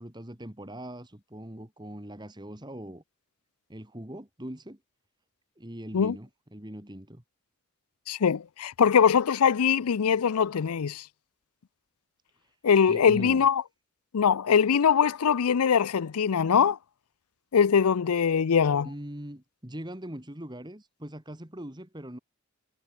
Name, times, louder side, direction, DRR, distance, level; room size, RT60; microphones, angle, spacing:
voice 1, 0.0-3.0 3.7-4.8 5.6-7.2 12.4-12.6 12.9-13.4 18.8-22.2, right 1 dB, 20° right, 2.0 m, -41 dB
voice 2, 8.1-11.0 12.6-13.6 14.1-16.8 17.5-18.9, left 7 dB, 90° left, 0.5 m, -22 dB
head